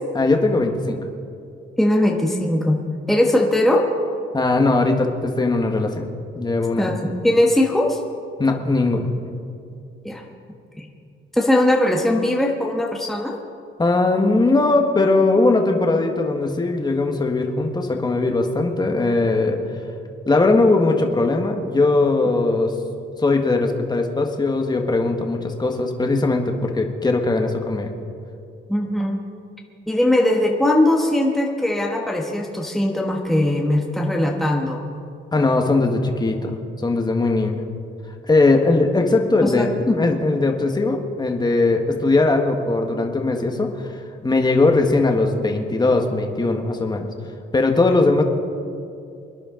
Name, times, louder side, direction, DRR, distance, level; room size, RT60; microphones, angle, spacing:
voice 1, 0.1-1.0 4.3-6.1 6.3-6.9 8.4-9.1 13.8-19.6 20.3-22.7 23.2-27.9 35.3-37.6 38.2-47.1 47.5-48.2, left 3 dB, 20° left, 3 dB, 1.6 m, -19 dB
voice 2, 1.8-2.8 3.1-3.8 6.8-8.0 10.0-10.2 10.8-10.9 11.3-13.4 28.7-29.2 29.9-34.8 39.4-39.7, left 1 dB, ahead, -1 dB, 1.4 m, -20 dB
24.0 x 10.5 x 3.9 m, 2.5 s
cardioid pair, 90°, 20 cm